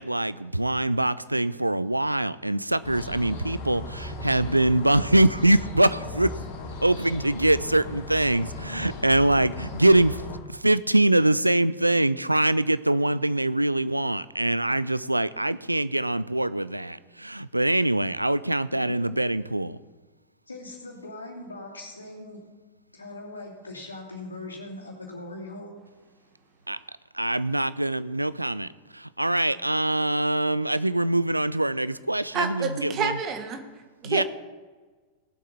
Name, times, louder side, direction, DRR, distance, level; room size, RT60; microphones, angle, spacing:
voice 1, 0.0-6.3 6.8-10.2 10.5-19.8 26.7-26.8 27.1-33.2 34.0-34.2, right 1 dB, 85° right, 17 dB, 0.3 m, -23 dB
sound 1, 2.8-10.4, left 2 dB, 55° left, 2.5 m, -37 dB
voice 2, 18.7-19.1 20.5-22.4 22.9-25.7, left 2 dB, 80° left, -2 dB, 2.8 m, -40 dB
voice 3, 32.3-33.6 34.0-34.2, right 5 dB, 35° right, 7 dB, 1.5 m, -28 dB
18.5 x 7.4 x 4.2 m, 1.3 s
figure-of-eight pair, 90°, 0 cm